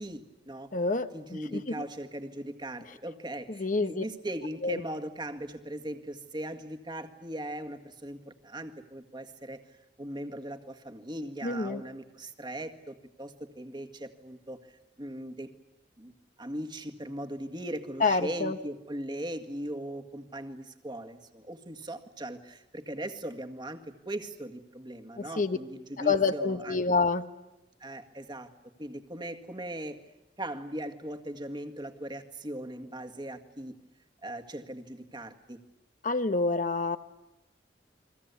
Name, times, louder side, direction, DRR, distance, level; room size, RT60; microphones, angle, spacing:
voice 1, 0.0-0.7 1.1-9.6 10.0-15.5 16.0-16.1 16.4-26.8 27.8-28.5 28.8-30.0 30.4-33.8 34.2-35.6, right 1 dB, 25° right, 6 dB, 1.9 m, -39 dB
voice 2, 0.7-1.8 3.5-4.0 4.6-4.8 11.4-11.8 18.0-18.6 25.2-25.6 26.0-27.3 36.0-37.0, left 3 dB, 50° left, 9 dB, 1.1 m, -28 dB
29.5 x 23.5 x 8.4 m, 0.96 s
head